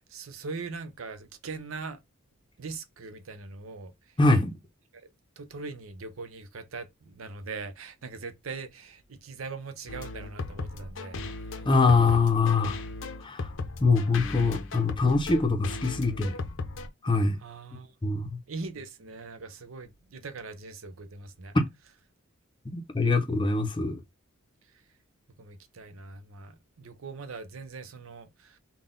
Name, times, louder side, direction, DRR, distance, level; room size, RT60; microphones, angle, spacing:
voice 1, 0.1-2.0 2.6-4.2 4.9-5.1 5.4-11.2 17.4-17.9 18.5-21.5 25.4-28.6, right 4 dB, 80° right, 0.7 m, -41 dB
voice 2, 4.2-4.5 11.6-12.8 13.2-13.5 13.8-16.3 17.0-17.4 18.0-18.4 21.5-21.7 22.7-24.0, left 3 dB, 25° left, 0.6 m, -23 dB
sound 1, 9.9-16.9, left 3 dB, 65° left, 0.6 m, -37 dB
3.8 x 2.2 x 3.7 m
head